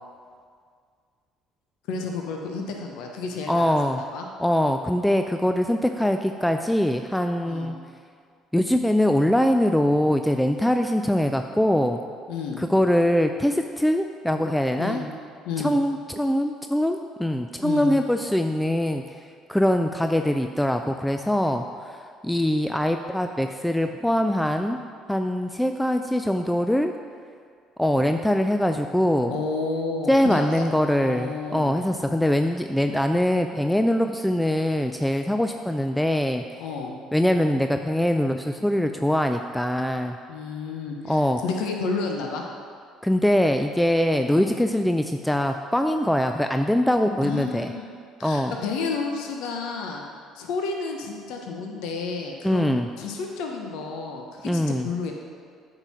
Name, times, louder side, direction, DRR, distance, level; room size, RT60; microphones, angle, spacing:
voice 1, 1.9-4.2 7.4-7.7 12.3-12.6 14.8-15.0 15.4-15.8 17.6-18.0 29.3-30.7 31.0-31.8 36.6-37.0 40.3-42.4 44.2-44.6 47.2-47.9 48.2-50.0 50.3-52.7 53.0-55.1, left 4 dB, 75° left, 2 dB, 0.8 m, -31 dB
voice 2, 3.5-4.0 4.4-7.8 8.5-12.0 12.6-15.0 15.6-19.0 19.5-24.8 25.1-26.9 27.8-29.3 30.1-36.4 37.1-40.2 41.1-41.4 43.0-47.7 48.2-48.5 52.4-52.9 54.4-54.9, left 1 dB, 5° left, 6 dB, 0.4 m, -23 dB
8.8 x 3.8 x 6.1 m, 2.1 s
supercardioid pair, 70°, 0 cm